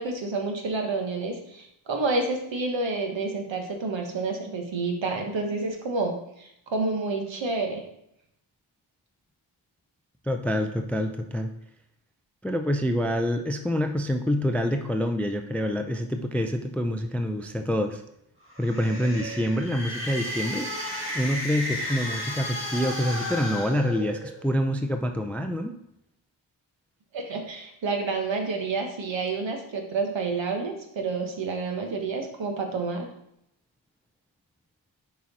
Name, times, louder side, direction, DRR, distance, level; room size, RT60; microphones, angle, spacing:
voice 1, 0.0-7.8 27.1-33.1, right 3 dB, 65° right, 3 dB, 1.4 m, -29 dB
voice 2, 10.2-11.5 12.4-18.0 18.6-20.7 21.1-25.7, equal, 5° left, 6 dB, 0.4 m, -26 dB
sound 1, 18.4-24.5, left 1 dB, 25° right, 1.9 m, -33 dB
6.3 x 4.5 x 4.1 m, 0.78 s
cardioid pair, 75°, 49 cm